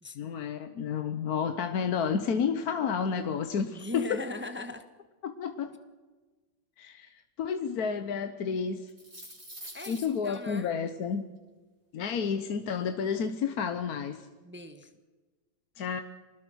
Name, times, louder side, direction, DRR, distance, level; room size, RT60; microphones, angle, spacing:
voice 1, 0.1-4.2 5.2-5.7 6.8-7.1 7.4-8.9 9.9-11.2 11.9-14.3 15.8-16.0, left 6 dB, 55° left, 8 dB, 1.3 m, -31 dB
voice 2, 3.7-4.8 9.7-10.7 14.4-14.9, left 2 dB, 10° right, 8 dB, 0.8 m, -39 dB
sound 1, 8.8-10.3, right 1 dB, 50° right, 6.9 m, -45 dB
25.0 x 19.5 x 6.3 m, 1.3 s
omnidirectional pair, 2.1 m